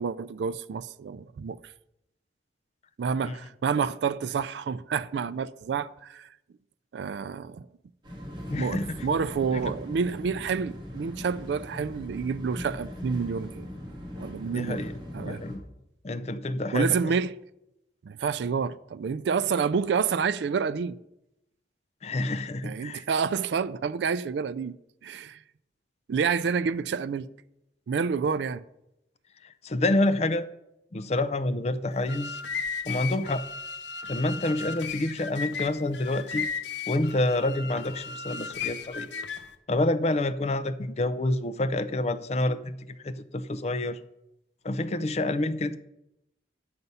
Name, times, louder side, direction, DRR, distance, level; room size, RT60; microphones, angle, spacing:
voice 1, 0.0-1.6 3.0-6.3 6.9-7.6 8.6-13.7 14.2-14.8 15.1-15.4 16.7-17.3 18.0-21.0 22.6-24.8 25.0-25.4 26.1-27.3 27.9-28.6, right 6 dB, 75° right, 0.3 m, -28 dB
sound 1, 8.0-15.6, equal, 25° right, 2.3 m, -40 dB
voice 2, 8.5-9.1 9.5-9.6 14.5-14.9 15.2-15.6 16.0-17.1 22.0-23.0 29.4-30.5 30.9-32.4 32.9-33.4 34.1-36.5 36.9-39.1 39.7-42.8 43.0-44.0 44.6-45.8, left 2 dB, 35° left, 0.5 m, -28 dB
sound 2, 31.9-39.6, left 5 dB, 80° left, 0.8 m, -35 dB
9.4 x 6.8 x 5.5 m
head